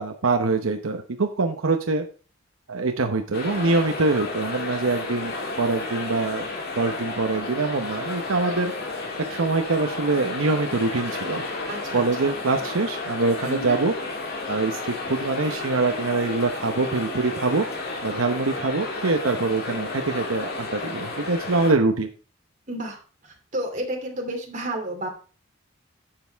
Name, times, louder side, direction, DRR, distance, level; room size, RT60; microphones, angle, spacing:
voice 1, 0.0-2.0 2.7-6.5 6.8-8.7 9.3-11.4 11.9-13.9 14.5-17.7 18.0-22.1, right 3 dB, 80° right, 5 dB, 0.9 m, -24 dB
sound 1, 3.3-21.7, left 3 dB, 50° left, 2.2 m, -32 dB
voice 2, 11.7-12.4 13.4-13.8 22.7-25.1, right 1 dB, 40° right, 2 dB, 2.7 m, -31 dB
10.5 x 7.8 x 3.4 m, 0.36 s
head